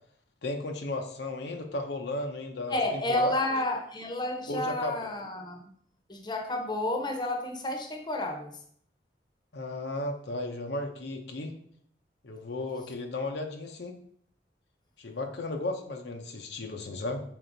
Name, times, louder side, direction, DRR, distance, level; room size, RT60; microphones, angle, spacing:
voice 1, 0.4-3.6 4.5-5.1 9.5-11.5 12.2-14.0 15.0-17.2, left 2 dB, 70° left, 4 dB, 0.8 m, -35 dB
voice 2, 2.7-5.7 6.1-8.5, left 1 dB, 25° left, 3 dB, 0.9 m, -31 dB
6.2 x 4.4 x 3.9 m, 0.64 s
head